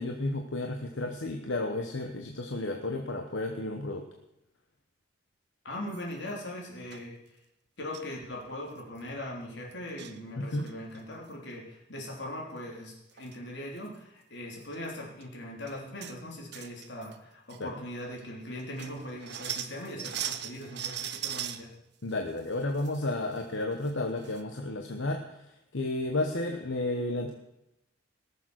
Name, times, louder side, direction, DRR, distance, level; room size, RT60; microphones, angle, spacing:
voice 1, 0.0-4.0 10.4-10.7 17.6-17.7 22.0-25.3 25.7-27.3, left 2 dB, 85° left, 4 dB, 1.1 m, -32 dB
voice 2, 5.6-7.2 7.8-21.7, left 1 dB, 65° left, -1 dB, 3.4 m, -40 dB
sound 1, 5.9-6.3 6.9-7.0 7.9-8.1 8.5-8.6 8.8-9.0 9.7-10.2 10.6-11.0 12.8-12.9 13.1-13.4 13.8-13.9 14.6-14.8 15.2-15.3 15.7-16.2 16.5-17.2 17.5-17.6 18.2-18.3 18.6-21.6 22.1-23.0 23.3-23.4 23.8-23.9 24.2-24.4, right 10 dB, 60° right, 0.8 m, -39 dB
18.0 x 7.0 x 6.4 m, 0.88 s
head